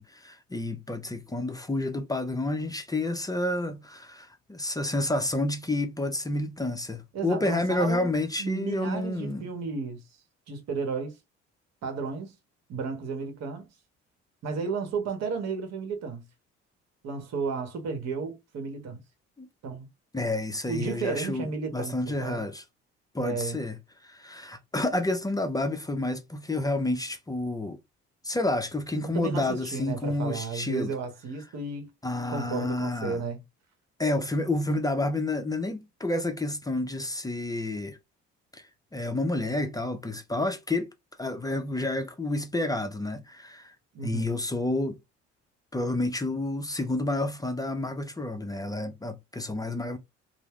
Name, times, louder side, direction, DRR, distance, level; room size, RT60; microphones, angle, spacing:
voice 1, 0.0-9.5 19.4-19.5 20.1-22.6 23.1-23.8 24.0-27.8 28.2-30.9 32.0-33.2 34.0-38.0 38.5-38.6 38.9-40.9 41.2-43.7 44.0-45.0 45.7-50.0, left 2 dB, 10° left, 0.5 m, -29 dB
voice 2, 7.1-8.1 8.4-10.0 10.5-11.2 11.8-12.4 12.7-13.7 14.4-16.2 17.0-19.0 19.6-19.9 20.7-22.4 23.2-23.6 29.0-31.9 32.3-33.4 43.9-44.3, right 5 dB, 60° right, 1.0 m, -33 dB
2.1 x 2.0 x 3.4 m
hypercardioid pair, 65°, 30 cm